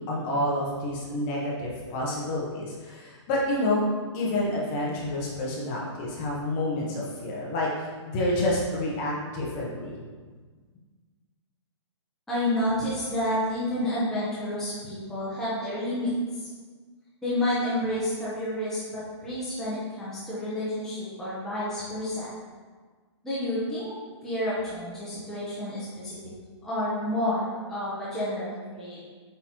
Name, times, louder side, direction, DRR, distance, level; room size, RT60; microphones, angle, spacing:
voice 1, 0.1-3.9 4.1-7.7 8.1-10.0, left 1 dB, 25° left, -4 dB, 1.1 m, -28 dB
voice 2, 12.3-16.5 17.2-22.3 23.2-23.9 24.2-26.3 26.6-29.0, left 1 dB, 5° left, -10 dB, 0.9 m, -30 dB
8.0 x 3.9 x 3.1 m, 1.5 s
hypercardioid pair, 165°, 15 cm